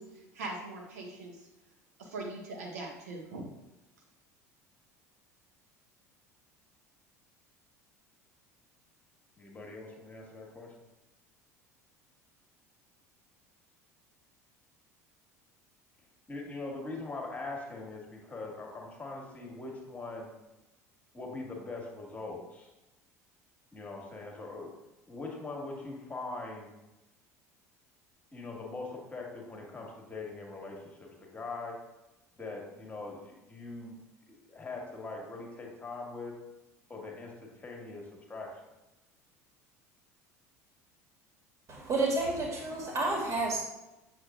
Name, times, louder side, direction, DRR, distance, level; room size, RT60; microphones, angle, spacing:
voice 1, 0.0-1.5 2.0-3.5, right 2 dB, 70° right, -1 dB, 1.7 m, -41 dB
voice 2, 9.4-10.7 16.3-20.3 21.1-22.7 23.7-24.7 25.1-26.7 28.3-31.8 32.4-34.0 34.3-36.4 36.9-38.6, left 3 dB, 15° left, 0 dB, 1.9 m, -42 dB
voice 3, 41.7-43.6, right 2 dB, 35° right, -2 dB, 2.4 m, -30 dB
7.8 x 7.1 x 2.5 m, 0.98 s
figure-of-eight pair, 65°, 9 cm